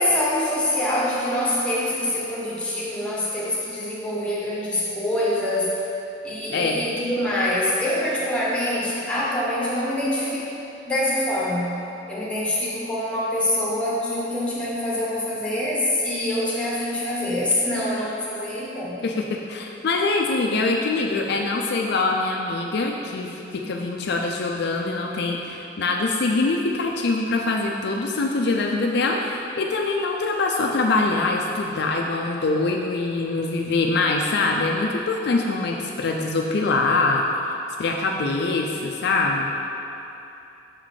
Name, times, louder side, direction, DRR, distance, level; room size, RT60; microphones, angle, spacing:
voice 1, 0.0-5.8 6.2-11.7 12.1-19.0, left 1 dB, 5° left, -6 dB, 1.1 m, -25 dB
voice 2, 6.5-6.8 19.0-37.2 37.8-39.5, left 3 dB, 60° left, 1 dB, 0.4 m, -24 dB
6.4 x 3.9 x 4.8 m, 2.8 s
head